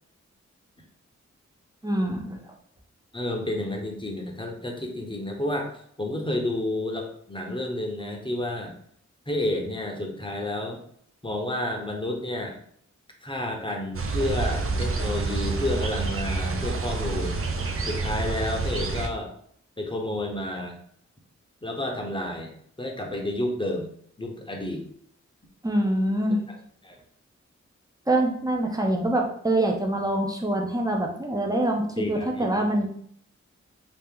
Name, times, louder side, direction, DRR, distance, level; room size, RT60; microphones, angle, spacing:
voice 1, 1.8-2.4 25.6-26.4 28.1-32.9, right 1 dB, 10° right, 1 dB, 0.8 m, -25 dB
voice 2, 3.1-8.7 9.3-10.8 11.2-12.6 13.2-17.4 17.8-19.3 19.8-20.8 21.6-23.9 24.2-24.8 26.8-27.0 32.0-32.7, left 1 dB, 15° left, 1 dB, 0.9 m, -30 dB
sound 1, 13.9-19.1, right 3 dB, 45° right, 0.6 m, -28 dB
2.9 x 2.8 x 3.7 m, 0.65 s
cardioid pair, 45°, 29 cm